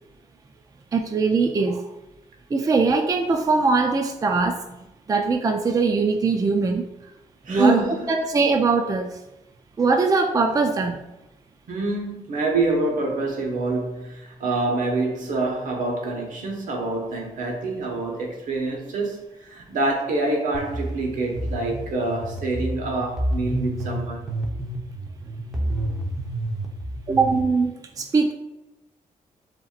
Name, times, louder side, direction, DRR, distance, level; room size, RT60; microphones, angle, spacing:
voice 1, 0.9-1.9 2.5-4.8 5.1-6.8 7.5-7.8 8.1-9.2 9.8-11.0 27.1-28.3, right 4 dB, 25° right, 4 dB, 0.4 m, -21 dB
voice 2, 7.4-8.1 11.7-24.2, right 2 dB, 70° right, 0 dB, 1.3 m, -26 dB
sound 1, 20.5-27.4, right 1 dB, 5° right, 0.9 m, -30 dB
7.3 x 2.9 x 2.4 m, 0.97 s
cardioid pair, 100°, 14 cm